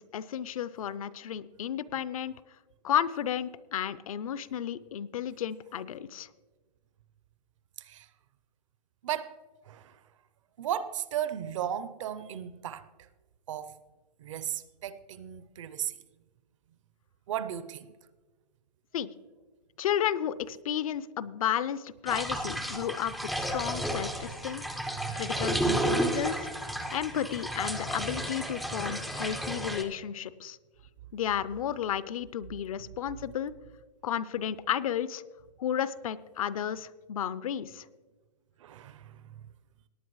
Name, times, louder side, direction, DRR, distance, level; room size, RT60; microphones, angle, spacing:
voice 1, 0.1-2.3 2.8-6.3 18.9-19.1 19.8-24.6 25.1-26.5 26.9-30.6 31.1-33.5 34.0-35.2 35.6-37.8, left 10 dB, 55° left, 0.5 m, -32 dB
voice 2, 9.0-9.4 9.6-10.0 10.6-12.9 13.5-13.7 14.2-16.0 17.3-17.9 24.9-25.2 38.6-39.2, right 10 dB, 50° right, 0.6 m, -35 dB
sound 1, 22.1-29.8, right 1 dB, ahead, 0.3 m, -32 dB
18.5 x 9.2 x 3.1 m
hypercardioid pair, 145°, 21 cm